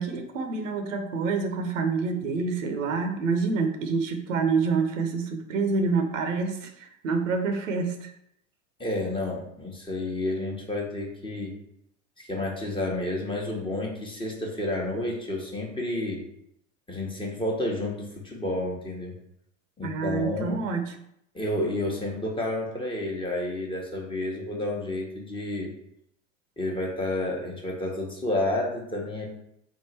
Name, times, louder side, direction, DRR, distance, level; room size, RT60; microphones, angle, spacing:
voice 1, 0.0-8.1 19.8-21.0, right 4 dB, 75° right, 6 dB, 0.8 m, -27 dB
voice 2, 8.8-11.5 12.2-16.2 16.9-19.1 19.8-20.6 21.3-25.7 26.6-29.3, left 1 dB, 15° left, -2 dB, 1.0 m, -30 dB
3.6 x 2.5 x 4.3 m, 0.74 s
hypercardioid pair, 90°, 39 cm